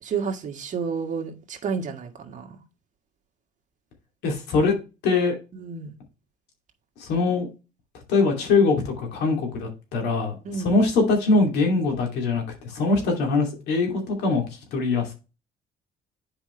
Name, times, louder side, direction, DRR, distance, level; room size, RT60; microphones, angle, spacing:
voice 1, 0.0-2.6 5.6-5.9 10.4-10.7, right 5 dB, 45° right, 1.7 m, -30 dB
voice 2, 4.2-4.8 5.0-5.4 7.0-7.5 8.1-10.4 10.6-14.4 14.7-15.1, left 3 dB, 80° left, 2.6 m, -22 dB
8.8 x 5.0 x 3.2 m
cardioid pair, 110°, 17 cm